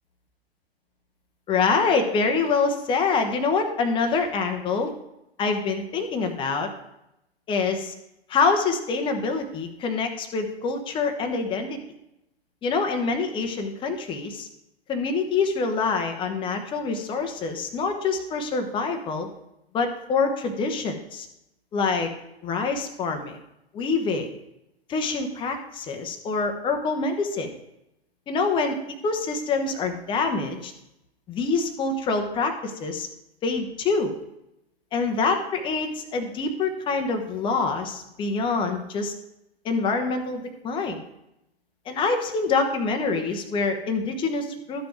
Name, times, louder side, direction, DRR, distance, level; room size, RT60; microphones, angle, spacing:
voice 1, 1.5-4.9 5.4-6.7 7.5-7.9 8.3-11.8 12.6-14.5 14.9-19.3 19.7-21.3 21.7-22.1 22.4-23.4 23.7-24.3 24.9-27.5 28.3-28.8 29.0-30.7 31.3-33.1 33.4-34.1 34.9-39.1 39.6-41.0 41.9-44.9, left 4 dB, 15° left, 5 dB, 0.8 m, -25 dB
12.5 x 5.2 x 4.5 m, 0.85 s
figure-of-eight pair, 110°, 31 cm